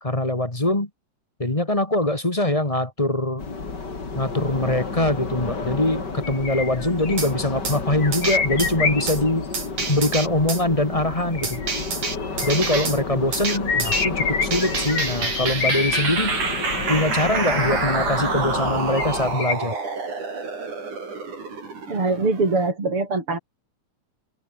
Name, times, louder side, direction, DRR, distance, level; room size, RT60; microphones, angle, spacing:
voice 1, 0.0-0.9 1.4-3.4 4.1-9.5 9.9-11.6 12.4-16.4 16.9-19.8, left 1 dB, 10° left, 2.1 m, -23 dB
sound 1, 3.4-19.4, left 4 dB, 35° left, 3.9 m, -31 dB
sound 2, 6.2-7.3 8.0-9.5 11.3-12.7 13.5-16.0 17.5-18.1 18.9-19.5, left 5 dB, 75° left, 6.1 m, -27 dB
sound 3, 7.2-7.3 7.6-7.8 8.1-8.7 9.1-9.2 9.5-10.6 11.4-13.0 13.3-14.0 14.5-22.7, right 4 dB, 85° right, 7.5 m, -28 dB
voice 2, 21.9-23.4, right 3 dB, 45° right, 6.4 m, -23 dB
omnidirectional pair, 3.4 m